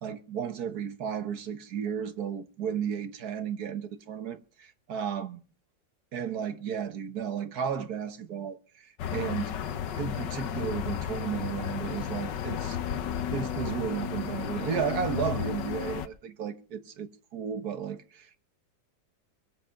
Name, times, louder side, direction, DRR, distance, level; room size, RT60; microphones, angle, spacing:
voice 1, 0.0-5.4 6.1-9.6 10.0-12.8 13.3-18.4, right 7 dB, 60° right, 1.6 m, -33 dB
sound 1, 9.0-16.1, left 9 dB, 85° left, 1.6 m, -33 dB
22.0 x 7.9 x 5.8 m
omnidirectional pair, 1.9 m